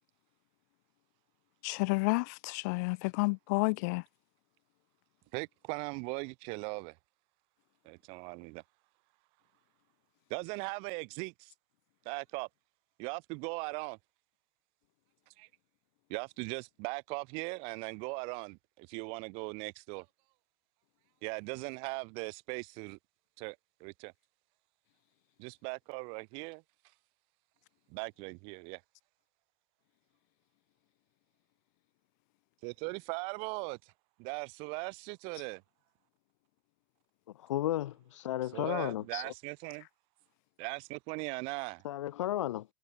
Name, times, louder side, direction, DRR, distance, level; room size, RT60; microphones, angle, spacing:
voice 1, 1.6-4.0, left 30 dB, 35° left, 0.5 m, -30 dB
voice 2, 5.3-7.0 7.8-8.6 10.3-11.5 12.0-12.5 13.0-14.0 15.4-15.5 16.1-20.1 21.2-23.0 23.4-24.1 25.4-26.6 27.9-28.8 32.6-33.9 34.2-35.6 38.4-39.9 40.6-41.8, right 33 dB, 35° right, 2.6 m, -39 dB
voice 3, 37.4-39.2 41.8-42.7, left 13 dB, 75° left, 3.6 m, -33 dB
supercardioid pair, 175°, 16 cm